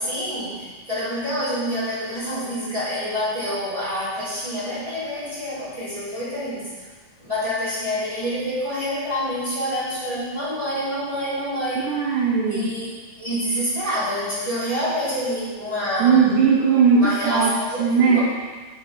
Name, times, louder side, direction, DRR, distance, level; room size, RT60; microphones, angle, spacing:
voice 1, 0.0-6.7 7.2-11.9 12.4-12.9 13.2-16.4 17.0-17.8 18.0-18.2, equal, 10° left, -11 dB, 3.2 m, -27 dB
voice 2, 11.9-12.7 16.0-18.2, right 6 dB, 75° right, -5 dB, 2.5 m, -18 dB
7.2 x 6.1 x 7.4 m, 1.4 s
omnidirectional pair, 3.6 m